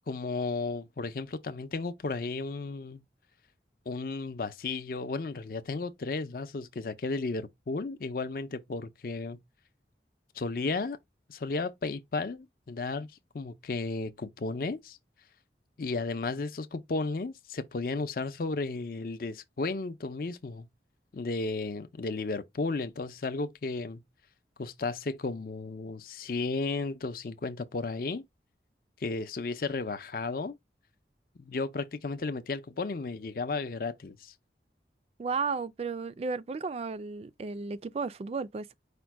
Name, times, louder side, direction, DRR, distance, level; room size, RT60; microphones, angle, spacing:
voice 1, 0.1-3.0 3.9-9.4 10.4-11.0 11.3-13.1 13.3-15.0 15.8-20.7 21.1-24.0 24.6-28.2 29.0-30.6 31.4-34.3, left 3 dB, 50° left, 0.5 m, -34 dB
voice 2, 35.2-38.7, right 4 dB, 35° right, 0.3 m, -34 dB
5.0 x 2.1 x 4.5 m
head